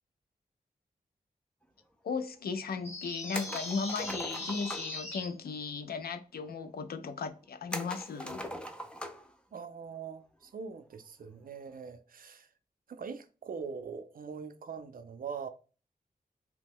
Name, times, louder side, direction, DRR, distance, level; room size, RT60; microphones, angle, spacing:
voice 1, 2.0-8.4, left 5 dB, 80° left, 0.4 m, -36 dB
sound 1, 2.8-5.3, left 2 dB, 45° left, 1.5 m, -40 dB
sound 2, 3.3-5.0 7.7-9.3 9.7-9.8 11.4-11.7, equal, 5° left, 0.4 m, -40 dB
voice 2, 9.5-12.5 12.9-15.5, right 6 dB, 65° right, 0.4 m, -42 dB
2.9 x 2.1 x 3.5 m
wide cardioid pair, 95°, 16 cm